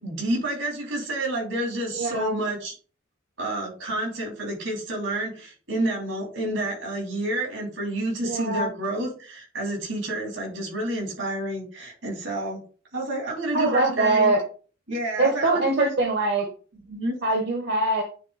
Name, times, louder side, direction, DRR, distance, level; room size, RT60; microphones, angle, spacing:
voice 1, 0.0-2.7 3.4-12.6 12.9-14.3 14.9-15.9 16.9-17.1, right 1 dB, 80° right, 0 dB, 3.6 m, -29 dB
voice 2, 1.9-2.3 8.2-8.7 13.5-14.4 15.2-16.5 17.2-18.0, right 2 dB, 55° right, 2 dB, 1.2 m, -23 dB
9.2 x 3.7 x 4.1 m, 0.38 s
head